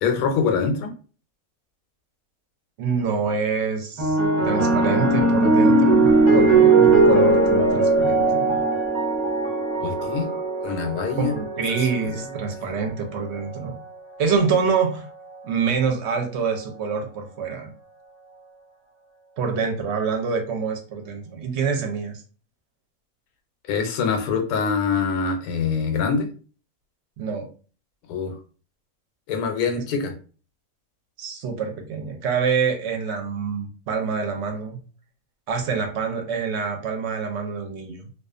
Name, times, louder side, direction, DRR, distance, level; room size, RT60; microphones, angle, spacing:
voice 1, 0.0-0.9 9.8-10.3 10.6-11.3 12.0-12.1 12.5-12.6 23.7-26.3 28.1-28.3 29.3-30.1, left 5 dB, 90° left, 6 dB, 1.1 m, -24 dB
voice 2, 2.8-4.2 4.4-8.6 11.2-13.8 14.2-15.1 15.4-17.7 19.4-22.2 27.2-27.5 29.8-29.9 31.2-34.8 35.5-38.1, right 5 dB, 60° right, 4 dB, 0.8 m, -26 dB
sound 1, 4.0-12.6 13.5-13.8, right 3 dB, 35° right, 0.4 m, -19 dB
2.4 x 2.3 x 2.4 m, 0.37 s
omnidirectional pair, 1.5 m